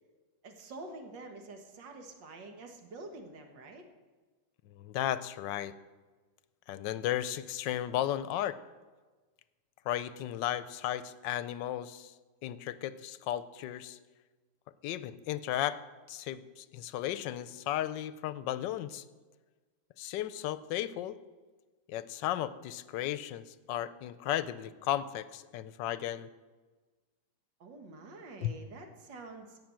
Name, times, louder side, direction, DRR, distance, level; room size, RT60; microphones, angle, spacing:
voice 1, 0.4-3.8 27.6-29.6, right 2 dB, 85° right, 4 dB, 2.1 m, -47 dB
voice 2, 4.7-5.7 6.7-8.6 9.9-12.1 12.4-14.0 14.8-15.8 16.1-19.0 20.0-21.2 21.9-26.3 28.4-28.5, left 12 dB, 85° left, 15 dB, 1.3 m, -35 dB
16.5 x 5.8 x 7.5 m, 1.3 s
omnidirectional pair, 1.9 m